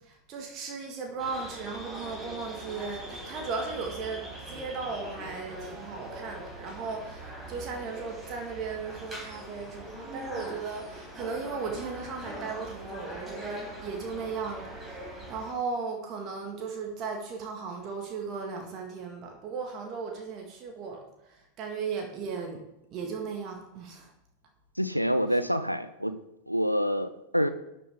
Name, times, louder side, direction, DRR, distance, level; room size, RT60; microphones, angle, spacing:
voice 1, 0.0-22.6 22.9-24.1 25.3-25.4, right 4 dB, 35° right, 2 dB, 1.9 m, -36 dB
sound 1, 1.2-15.5, right 1 dB, 15° right, 4.3 m, -42 dB
voice 2, 24.8-26.2 26.5-27.5, equal, 90° right, 11 dB, 0.6 m, -27 dB
12.5 x 7.7 x 3.7 m, 0.87 s
figure-of-eight pair, 90°, 0 cm